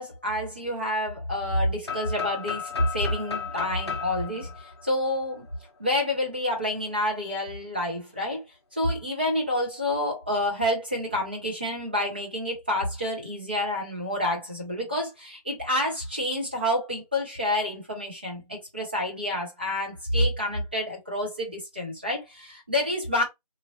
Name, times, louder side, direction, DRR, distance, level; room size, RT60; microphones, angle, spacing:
voice 1, 0.0-5.5 5.8-8.4 8.7-23.2, left 1 dB, 15° right, 0.7 m, -28 dB
sound 1, 1.8-5.7, left 7 dB, 40° left, 0.6 m, -35 dB
3.0 x 2.4 x 2.6 m
figure-of-eight pair, 170°, 20 cm